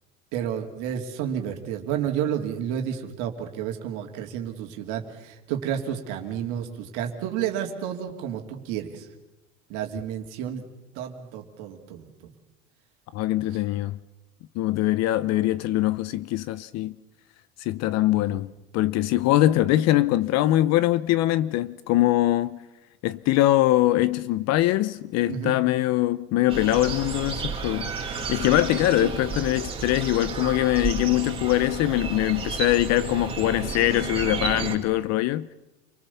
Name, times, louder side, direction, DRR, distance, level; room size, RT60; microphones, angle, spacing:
voice 1, 0.3-9.1 9.7-10.6 11.0-12.1 18.3-18.4 25.2-25.6 29.0-29.1, right 9 dB, 60° right, 2.8 m, -31 dB
voice 2, 13.1-14.0 14.6-16.9 17.6-22.6 23.0-35.5, left 15 dB, 50° left, 0.8 m, -23 dB
sound 1, 26.5-34.8, right 4 dB, 15° right, 4.1 m, -32 dB
28.0 x 19.0 x 7.1 m
supercardioid pair, 120°, 34 cm